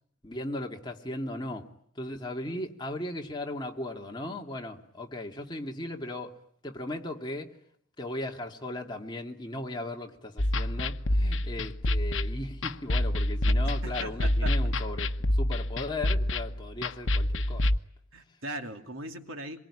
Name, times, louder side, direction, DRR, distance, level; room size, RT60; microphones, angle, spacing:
voice 1, 0.2-1.7 1.9-6.4 6.6-7.5 8.0-17.7, left 1 dB, 20° left, 2 dB, 2.4 m, -37 dB
sound 1, 10.4-17.8, left 1 dB, 70° left, 1.1 m, -27 dB
voice 2, 13.8-14.6 18.1-19.6, right 2 dB, 85° right, 5 dB, 2.9 m, -39 dB
26.5 x 23.0 x 9.9 m, 0.69 s
head